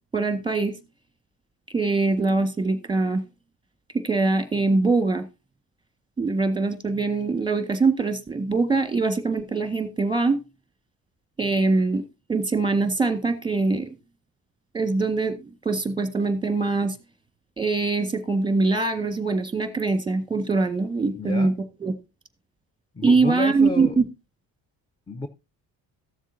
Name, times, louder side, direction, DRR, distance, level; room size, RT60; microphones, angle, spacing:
voice 1, 0.1-0.7 1.7-3.2 3.9-5.2 6.2-10.4 11.4-12.0 12.3-13.9 14.7-17.0 17.6-21.5 21.8-21.9 23.0-24.1, right 3 dB, 10° right, 1.6 m, -23 dB
voice 2, 21.2-21.5 23.0-23.9 25.1-25.3, left 2 dB, 10° left, 0.7 m, -30 dB
13.5 x 7.3 x 2.7 m
hypercardioid pair, 55°, 48 cm